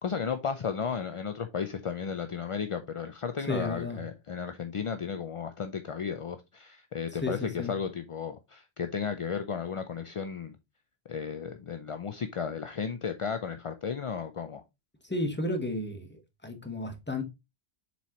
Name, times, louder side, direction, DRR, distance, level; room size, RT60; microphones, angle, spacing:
voice 1, 0.0-10.6 11.1-14.6, left 6 dB, 45° left, 0.4 m, -34 dB
voice 2, 3.5-4.0 7.2-7.7 15.0-17.2, left 2 dB, 10° left, 1.2 m, -33 dB
6.9 x 4.6 x 2.9 m
omnidirectional pair, 1.1 m